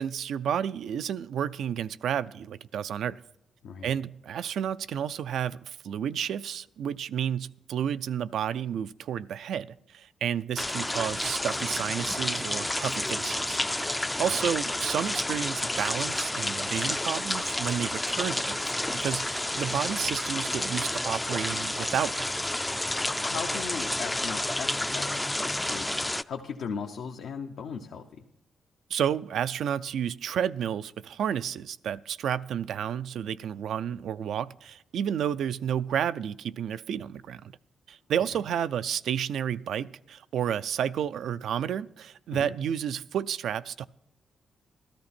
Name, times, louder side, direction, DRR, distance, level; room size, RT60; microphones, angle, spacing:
voice 1, 0.0-3.2 3.8-13.6 14.2-18.7 18.9-22.4 28.9-37.5 37.9-43.9, right 9 dB, 80° right, 14 dB, 0.4 m, -31 dB
voice 2, 3.6-3.9 14.2-14.3 23.2-28.2 38.3-38.4 42.3-42.5, left 6 dB, 85° left, 2 dB, 0.8 m, -38 dB
sound 1, 10.6-26.2, left 1 dB, 10° left, 0.3 m, -30 dB
13.0 x 13.0 x 4.3 m, 0.82 s
cardioid pair, 90°, 0 cm